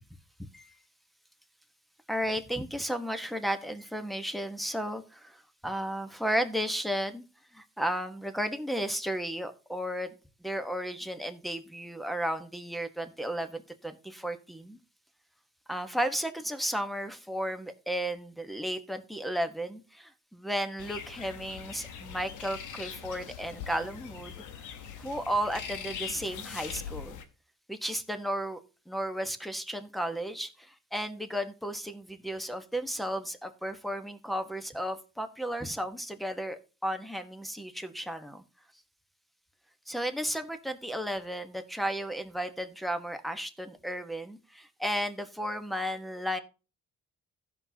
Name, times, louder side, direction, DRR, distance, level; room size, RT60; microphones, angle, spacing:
voice 1, 2.1-7.2 7.5-10.1 10.4-14.8 15.7-24.4 25.0-27.2 27.7-28.6 28.9-38.4 39.9-46.4, equal, ahead, 8 dB, 1.1 m, -34 dB
sound 1, 20.8-27.2, left 7 dB, 85° left, 1.1 m, -42 dB
16.0 x 5.9 x 2.8 m, 0.33 s
cardioid pair, 90°, 30 cm